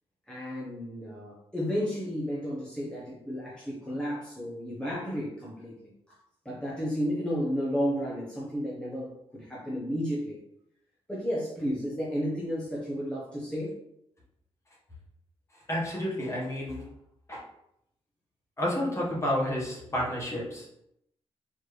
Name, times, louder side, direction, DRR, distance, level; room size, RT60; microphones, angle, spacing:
voice 1, 0.3-5.9 6.4-10.4 11.1-13.8, equal, 10° left, -7 dB, 1.1 m, -32 dB
voice 2, 15.7-16.8 17.3-17.4 18.6-20.7, left 1 dB, 25° left, -4 dB, 1.5 m, -30 dB
4.3 x 2.9 x 3.3 m, 0.78 s
cardioid pair, 85°, 11 cm